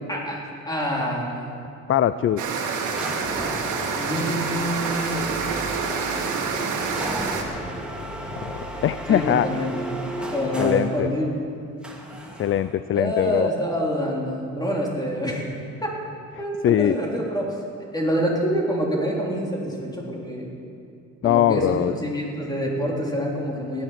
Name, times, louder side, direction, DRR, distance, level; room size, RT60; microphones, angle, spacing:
voice 1, 0.1-1.7 4.0-5.3 9.1-9.7 10.3-11.3 12.9-15.5 15.8-16.0 16.4-17.6 17.9-20.5 21.2-23.8, equal, 15° left, -3 dB, 3.7 m, -26 dB
voice 2, 1.9-2.8 8.4-9.5 10.6-11.1 12.4-13.5 16.6-16.9 21.2-21.9, left 11 dB, 45° left, 14 dB, 0.4 m, -22 dB
sound 1, 2.4-7.4, right 5 dB, 80° right, 1.9 m, -27 dB
sound 2, 2.9-11.0 11.8-12.7, right 1 dB, 5° right, 2.2 m, -34 dB
17.0 x 11.0 x 5.9 m, 2.5 s
cardioid pair, 90°, 30 cm